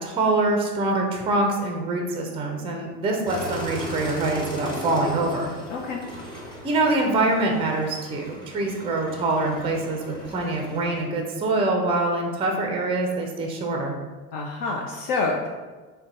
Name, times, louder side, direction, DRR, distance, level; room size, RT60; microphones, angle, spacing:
voice 1, 0.0-5.5 6.6-13.9, right 2 dB, 10° right, 2 dB, 0.4 m, -24 dB
sound 1, 3.3-11.1, right 1 dB, 10° left, 1.2 m, -37 dB
voice 2, 5.7-6.0 14.3-15.5, left 3 dB, 50° left, 1 dB, 0.5 m, -27 dB
3.8 x 2.2 x 3.6 m, 1.3 s
hypercardioid pair, 75°, 48 cm